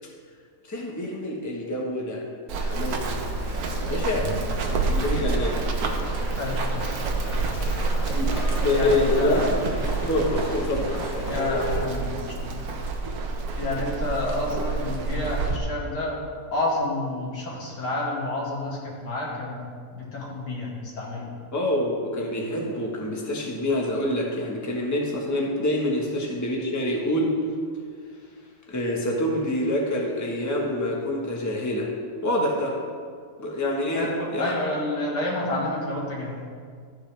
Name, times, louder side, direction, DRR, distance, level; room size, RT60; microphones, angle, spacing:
voice 1, 0.7-3.2 3.8-5.6 8.1-8.3 8.6-9.4 10.1-11.0 21.5-27.4 28.7-31.9 32.2-32.8 33.4-34.4, left 1 dB, 10° left, -2 dB, 1.2 m, -26 dB
Run, 2.5-15.6, right 3 dB, 65° right, 1.3 m, -28 dB
sound 1, 2.9-11.8, left 2 dB, 60° left, 1.7 m, -35 dB
voice 2, 6.4-7.2 8.7-9.5 11.3-12.6 13.6-16.2 16.5-19.7 19.9-21.3 33.9-36.4, left 2 dB, 80° left, -4 dB, 2.6 m, -29 dB
13.0 x 8.3 x 3.4 m, 2.1 s
omnidirectional pair, 1.8 m